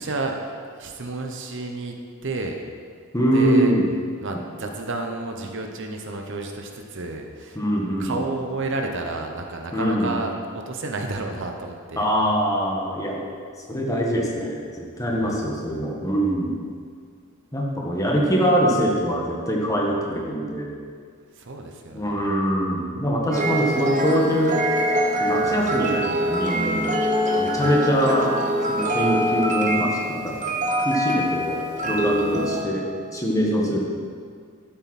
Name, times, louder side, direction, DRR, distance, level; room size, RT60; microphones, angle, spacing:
voice 1, 0.0-1.9 2.2-2.6 3.3-3.7 4.2-7.6 8.0-12.1 15.2-15.4 21.3-22.2 27.6-27.8, right 2 dB, 60° right, 3 dB, 0.9 m, -31 dB
voice 2, 3.1-3.8 7.5-8.2 9.7-10.2 12.0-13.2 13.7-16.6 17.5-20.7 21.9-24.6 25.2-27.0 27.4-28.2 28.7-30.4 30.8-31.6 31.8-32.8 33.1-33.8, equal, 15° left, -3 dB, 1.6 m, -23 dB
sound 1, 23.3-32.6, equal, 35° right, 1.0 m, -24 dB
12.0 x 7.7 x 4.3 m, 2.1 s
head